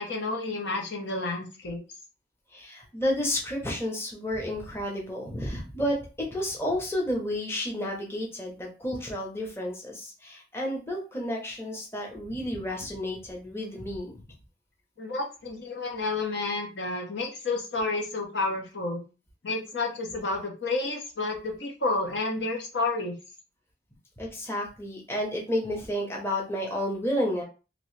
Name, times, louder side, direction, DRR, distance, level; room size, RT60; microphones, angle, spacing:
voice 1, 0.0-1.8 15.0-19.0 19.4-23.2, left 3 dB, 70° left, 1 dB, 0.9 m, -30 dB
voice 2, 2.5-14.2 24.2-27.4, left 1 dB, 15° left, -1 dB, 0.8 m, -31 dB
3.0 x 2.7 x 3.1 m, 0.32 s
head